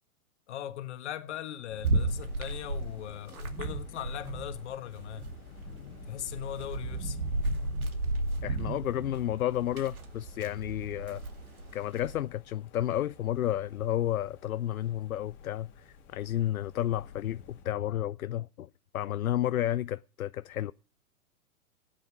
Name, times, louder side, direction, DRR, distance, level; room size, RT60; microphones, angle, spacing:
voice 1, 0.5-5.3 6.1-7.3, left 11 dB, 50° left, 1.5 m, -39 dB
sound 1, 1.7-17.7, left 5 dB, 25° left, 2.5 m, -52 dB
sound 2, 1.8-4.6 4.9-12.2, right 2 dB, 70° right, 2.4 m, -34 dB
voice 2, 8.4-11.2 11.7-18.7 18.9-20.7, left 12 dB, 70° left, 0.6 m, -31 dB
15.5 x 9.8 x 4.7 m
figure-of-eight pair, 110°, 44 cm